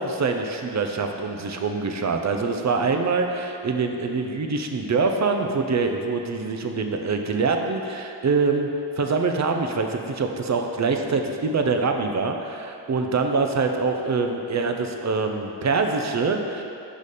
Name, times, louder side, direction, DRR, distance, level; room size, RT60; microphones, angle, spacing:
voice 1, 0.0-8.7 9.0-16.6, right 4 dB, 40° right, 4 dB, 0.5 m, -24 dB
5.0 x 5.0 x 4.2 m, 2.6 s
wide cardioid pair, 85°, 42 cm